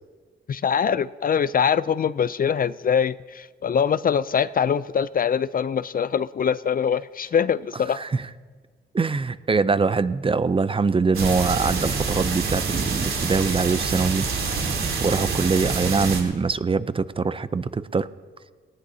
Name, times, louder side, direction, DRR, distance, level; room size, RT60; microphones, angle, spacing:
voice 1, 0.5-8.0, left 7 dB, 45° left, 17 dB, 0.4 m, -23 dB
voice 2, 7.9-8.2 8.9-18.1, right 4 dB, 25° right, 14 dB, 0.5 m, -23 dB
sound 1, 11.1-16.2, right 4 dB, 75° right, 3.3 m, -26 dB
18.5 x 18.5 x 2.8 m, 1.5 s
cardioid pair, 95°, 21 cm